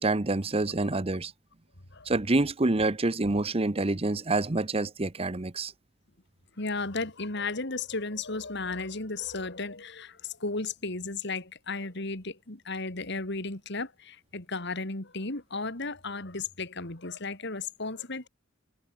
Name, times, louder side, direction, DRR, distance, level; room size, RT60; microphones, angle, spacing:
voice 1, 0.0-1.3 2.1-5.7, right 2 dB, 30° right, 0.9 m, -27 dB
voice 2, 6.6-18.3, left 3 dB, 60° left, 3.1 m, -34 dB
head